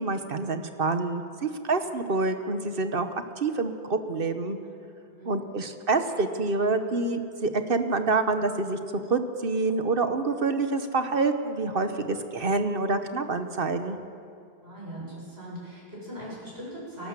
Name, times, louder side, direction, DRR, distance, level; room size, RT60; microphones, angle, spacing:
voice 1, 0.0-3.1 3.4-4.6 5.3-8.8 9.1-14.0, right 3 dB, 60° right, 8 dB, 1.3 m, -27 dB
voice 2, 5.0-5.4 14.6-17.1, equal, 75° right, -5 dB, 7.7 m, -40 dB
29.0 x 12.0 x 7.5 m, 2.4 s
omnidirectional pair, 1.1 m